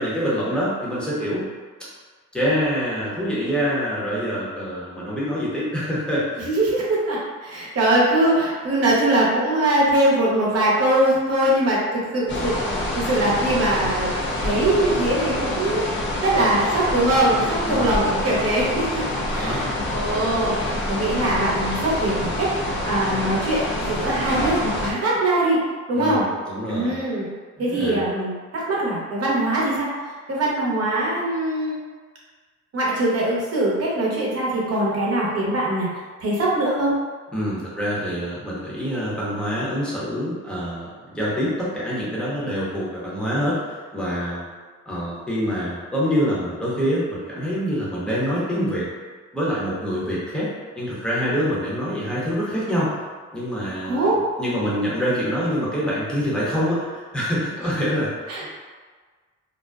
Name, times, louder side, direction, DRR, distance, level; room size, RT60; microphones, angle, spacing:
voice 1, 0.0-1.4 2.3-6.3 17.6-18.2 19.3-19.6 25.9-27.0 27.6-28.1 37.3-44.5 44.9-48.9 49.3-53.0 53.3-58.1 58.4-58.5, equal, 5° left, -8 dB, 0.9 m, -25 dB
voice 2, 6.4-14.1 14.4-22.5 22.8-25.6 25.9-26.2 26.7-27.3 27.6-29.9 30.3-31.8 32.7-35.9 36.2-36.9 53.8-54.2 58.3-58.5, right 1 dB, 55° right, -5 dB, 0.8 m, -22 dB
sound 1, 12.3-24.9, left 1 dB, 40° left, 0.5 m, -26 dB
2.5 x 2.2 x 2.2 m, 1.5 s
cardioid pair, 90°, 30 cm